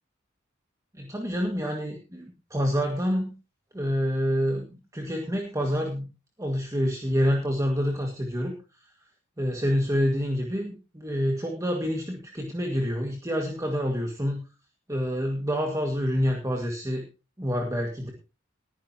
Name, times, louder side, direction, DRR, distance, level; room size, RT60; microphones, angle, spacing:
voice 1, 0.9-3.3 3.7-6.1 6.4-8.5 9.4-14.4 14.9-17.0 17.4-18.1, equal, 15° right, 1 dB, 1.9 m, -27 dB
19.5 x 10.5 x 2.9 m, 0.30 s
head